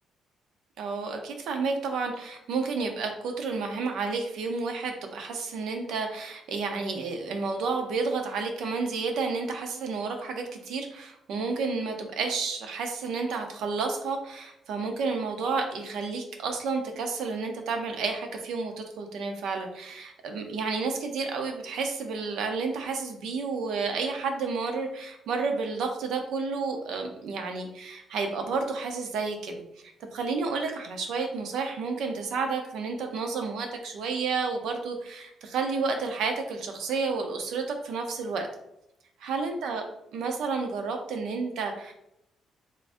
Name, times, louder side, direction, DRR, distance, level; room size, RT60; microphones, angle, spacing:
voice 1, 0.8-29.6 30.0-38.5 39.2-39.8 40.1-41.9, right 4 dB, 70° right, 4 dB, 0.6 m, -31 dB
3.7 x 2.6 x 3.5 m, 0.82 s
cardioid pair, 160°, 0 cm